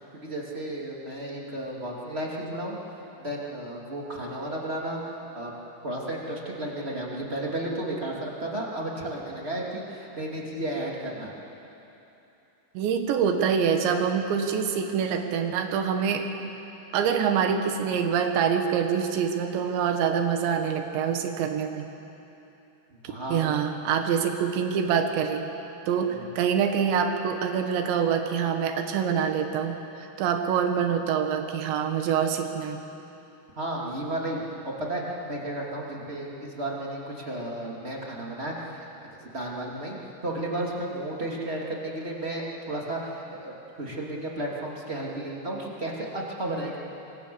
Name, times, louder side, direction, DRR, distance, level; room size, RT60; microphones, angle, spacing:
voice 1, 0.1-2.8 3.2-5.5 5.8-11.3 23.1-23.5 26.1-26.3 33.6-38.9 39.2-40.0 40.2-46.8, right 1 dB, 20° right, -3 dB, 2.1 m, -33 dB
voice 2, 12.8-16.3 16.9-21.9 23.3-25.5 25.9-32.8, right 7 dB, 85° right, 5 dB, 3.8 m, -25 dB
26.0 x 23.0 x 7.0 m, 3.0 s
omnidirectional pair, 5.0 m